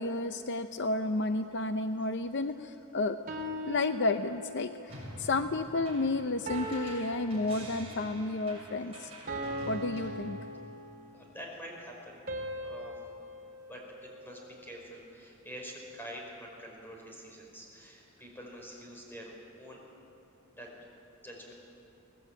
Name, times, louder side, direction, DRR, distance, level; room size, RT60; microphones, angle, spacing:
voice 1, 0.0-3.2 3.7-9.1 9.7-10.4, left 2 dB, 55° left, 9 dB, 0.6 m, -31 dB
sound 1, 3.3-4.8 6.5-8.1 9.3-11.2 12.3-14.6, equal, 45° right, 3.0 m, -40 dB
sound 2, 4.9-10.1, right 1 dB, 30° right, 7.5 m, -47 dB
voice 2, 11.1-12.2 12.6-13.0 13.7-20.0 20.6-20.7 21.2-21.5, equal, 10° left, -1 dB, 5.0 m, -46 dB
23.0 x 18.5 x 9.0 m, 2.8 s
head